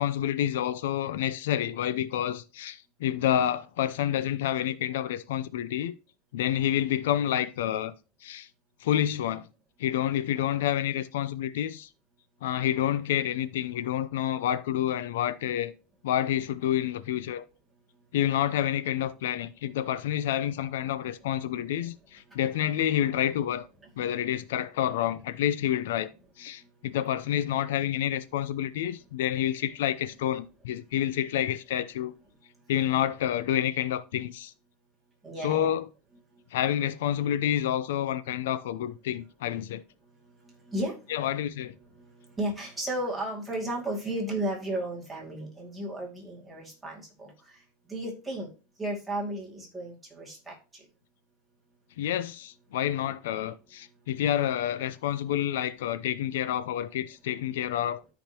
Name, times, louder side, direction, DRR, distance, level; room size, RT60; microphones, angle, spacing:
voice 1, 0.0-5.9 6.3-7.9 8.2-8.5 8.8-9.5 9.8-11.9 12.4-15.7 16.0-17.5 18.1-23.7 24.0-26.1 26.4-32.1 32.7-34.5 35.4-35.9 36.5-39.8 41.1-41.7 52.0-58.0, left 11 dB, 85° left, 0.6 m, -28 dB
voice 2, 35.2-35.7 40.7-41.0 42.4-47.3 47.9-48.5 48.8-50.6, right 1 dB, 5° right, 2.3 m, -33 dB
13.5 x 5.1 x 2.9 m
supercardioid pair, 170°, 0 cm